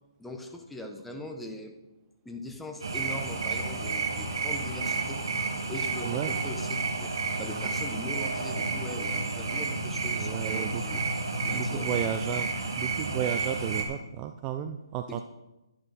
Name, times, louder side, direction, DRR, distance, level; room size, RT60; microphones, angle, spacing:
voice 1, 0.2-1.7 2.2-5.2 5.7-11.0 11.4-12.0 15.1-15.2, left 1 dB, 5° left, 3 dB, 0.9 m, -41 dB
sound 1, 2.8-13.8, right 3 dB, 65° right, 2.2 m, -31 dB
voice 2, 6.1-6.4 10.1-10.8 11.5-12.5 12.8-15.2, right 11 dB, 20° right, 8 dB, 0.4 m, -33 dB
11.0 x 10.5 x 4.2 m, 0.98 s
hypercardioid pair, 155°, 3 cm